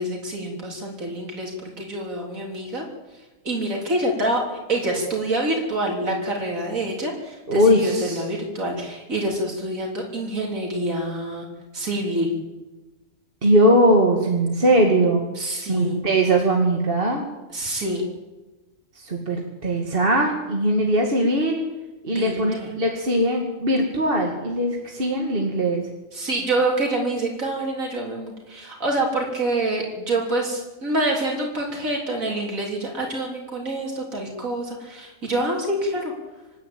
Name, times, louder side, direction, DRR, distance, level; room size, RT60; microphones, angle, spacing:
voice 1, 0.0-2.8 3.4-4.4 4.7-11.5 11.7-12.3 15.4-16.0 17.5-18.0 22.1-22.3 22.6-22.7 26.1-36.1, right 1 dB, 80° right, -1 dB, 4.0 m, -26 dB
voice 2, 7.5-8.2 13.4-15.2 15.7-17.2 18.9-21.6 22.0-25.8, right 1 dB, 40° right, 0 dB, 2.4 m, -20 dB
26.0 x 11.5 x 9.0 m, 1.1 s
omnidirectional pair, 1.4 m